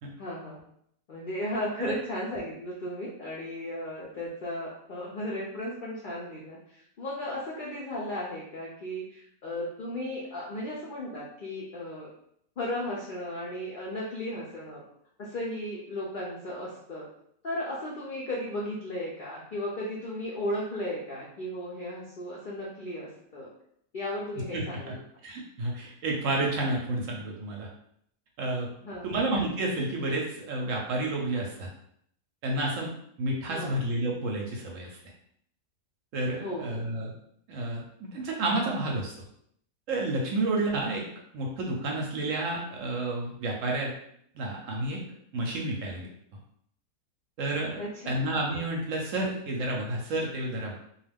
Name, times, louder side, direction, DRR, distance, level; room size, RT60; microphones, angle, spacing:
voice 1, 0.2-0.6 1.1-12.1 12.6-14.8 15.2-17.1 17.4-23.5 23.9-25.0 28.8-29.2 33.5-33.8 36.4-36.8 47.8-48.2, left 1 dB, 70° left, -5 dB, 0.5 m, -35 dB
voice 2, 24.5-24.9 25.2-27.7 28.4-28.7 29.0-31.7 32.4-32.9 33.2-34.9 36.1-37.1 37.5-39.1 39.9-41.0 41.3-43.9 44.3-45.0 45.3-46.1 47.4-47.8 48.1-50.8, right 2 dB, 65° right, -1 dB, 0.9 m, -30 dB
2.5 x 2.3 x 3.3 m, 0.69 s
omnidirectional pair, 1.6 m